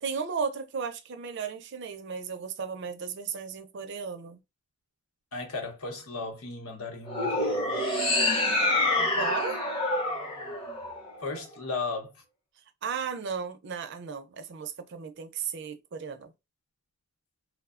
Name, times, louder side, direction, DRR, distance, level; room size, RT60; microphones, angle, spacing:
voice 1, 0.0-4.4 9.2-9.6 12.8-16.3, right 6 dB, 50° right, 0.4 m, -35 dB
voice 2, 5.3-7.8 11.2-12.1, left 3 dB, 75° left, 0.8 m, -36 dB
sound 1, 7.1-11.4, left 2 dB, 25° left, 0.6 m, -27 dB
3.1 x 2.0 x 2.3 m
head